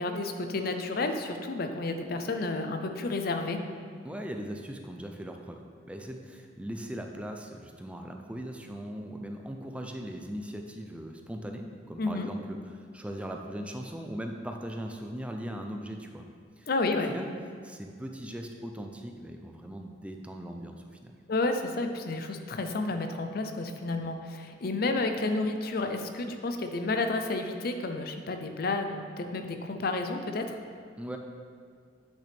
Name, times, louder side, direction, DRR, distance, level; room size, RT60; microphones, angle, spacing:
voice 1, 0.0-3.6 12.0-12.3 16.7-17.1 21.3-30.6, left 2 dB, 55° left, 6 dB, 0.5 m, -31 dB
voice 2, 4.0-16.3 16.6-16.7 17.0-17.3 17.6-21.1 31.0-31.2, equal, 5° right, 3 dB, 0.4 m, -39 dB
8.3 x 6.1 x 3.4 m, 2.1 s
head